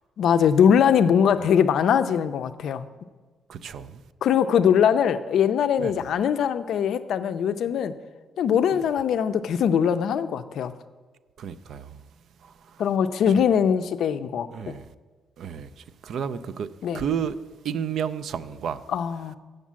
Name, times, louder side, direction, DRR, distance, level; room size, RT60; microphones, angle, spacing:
voice 1, 0.2-2.9 4.2-7.9 8.4-10.7 12.8-14.7 16.8-17.1 18.9-19.4, left 8 dB, 65° left, 0.5 m, -21 dB
voice 2, 3.5-4.0 5.8-5.9 8.7-8.8 11.4-12.0 12.4-12.8 14.5-14.9 15.4-15.7 16.0-16.7 16.9-17.4 17.6-18.8, right 8 dB, 60° right, 0.4 m, -31 dB
8.2 x 6.5 x 7.4 m
cardioid pair, 160°, 0 cm